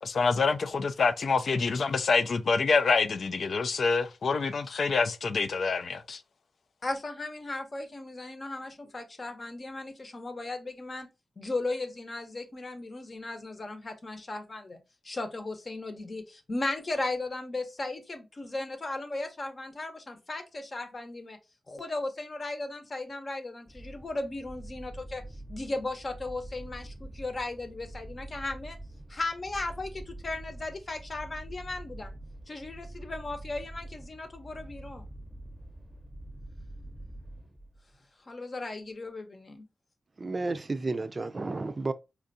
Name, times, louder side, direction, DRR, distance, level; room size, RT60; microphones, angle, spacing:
voice 1, 0.0-6.2, left 4 dB, 75° left, 0.4 m, -26 dB
voice 2, 6.8-11.1 11.4-14.8 15.0-21.4 21.7-25.2 25.5-28.8 29.1-32.2 32.5-35.1 38.3-39.6, left 2 dB, 45° left, 0.8 m, -36 dB
sound 1, 23.7-37.9, right 1 dB, 10° right, 0.7 m, -45 dB
voice 3, 40.2-41.9, right 3 dB, 45° right, 0.4 m, -32 dB
4.3 x 2.4 x 2.6 m
cardioid pair, 55°, 0 cm